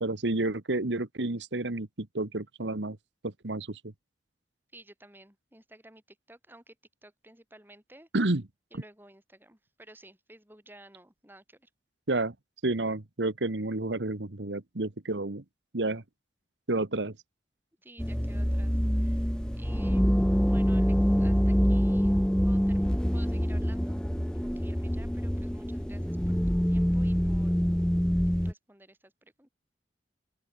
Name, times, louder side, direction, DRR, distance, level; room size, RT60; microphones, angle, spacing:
voice 1, 0.0-3.0 3.2-3.8 8.1-8.4 12.1-12.3 12.6-15.4 15.7-16.0 16.7-17.1, right 2 dB, 90° right, 1.5 m, -30 dB
voice 2, 4.7-6.8 7.0-8.1 8.7-11.7 17.8-20.1 20.4-22.2 22.4-22.9 23.1-24.0 24.3-27.6 28.4-29.5, right 1 dB, 10° right, 6.0 m, -54 dB
sound 1, 18.0-28.5, equal, 5° left, 1.1 m, -26 dB
open air
head